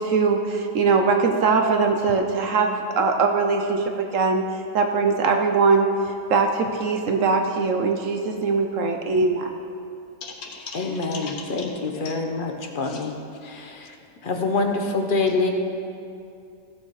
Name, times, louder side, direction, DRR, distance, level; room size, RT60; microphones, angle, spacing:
voice 1, 0.0-4.4 4.7-5.9 6.3-9.5, right 4 dB, 65° right, 4 dB, 1.1 m, -21 dB
voice 2, 10.2-11.4 12.0-12.1 12.9-13.0, left 4 dB, 75° left, 0 dB, 1.7 m, -37 dB
voice 3, 10.7-13.2 13.4-14.0 14.2-15.5, left 3 dB, 40° left, 4 dB, 1.0 m, -26 dB
15.5 x 7.0 x 4.8 m, 2.5 s
omnidirectional pair, 1.5 m